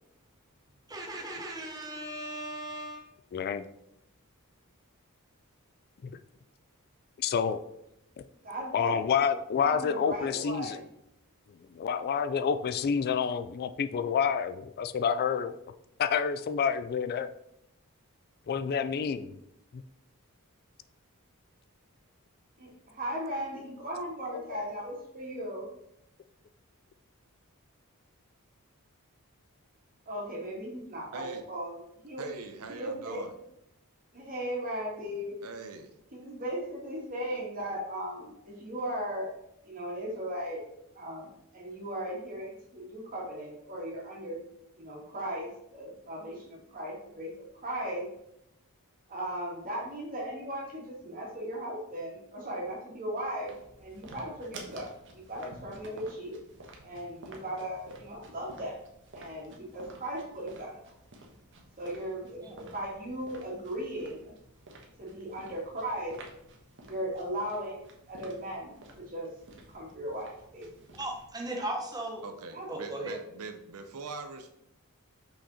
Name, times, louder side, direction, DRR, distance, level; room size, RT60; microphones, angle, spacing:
voice 1, 0.9-3.1 62.4-62.6 71.0-72.2 72.7-73.1, right 1 dB, 15° right, 1 dB, 1.0 m, -37 dB
voice 2, 3.3-3.7 6.0-6.1 7.2-7.6 8.7-10.8 11.7-15.5 16.0-17.3 18.5-19.3 19.7-19.8 24.3-24.6, left 7 dB, 45° left, 11 dB, 0.3 m, -28 dB
voice 3, 8.4-9.0 9.6-10.8 22.6-25.7 30.1-31.7 32.0-32.3 32.7-33.2 34.1-35.3 36.1-39.3 39.6-40.6 40.9-44.4 44.8-47.3 47.6-48.0 49.1-53.5 53.8-56.3 56.8-58.8 59.1-60.7 61.8-64.3 65.0-66.1 66.8-69.3 69.7-70.7 71.5-71.6 72.5-73.2, right 1 dB, 40° right, -3 dB, 2.3 m, -37 dB
voice 4, 31.1-31.4 32.2-33.3 35.4-35.9 72.2-74.5, right 3 dB, 80° right, 6 dB, 0.7 m, -42 dB
sound 1, 53.5-71.3, right 2 dB, 60° right, 1.3 m, -52 dB
5.9 x 5.4 x 4.2 m, 0.80 s
head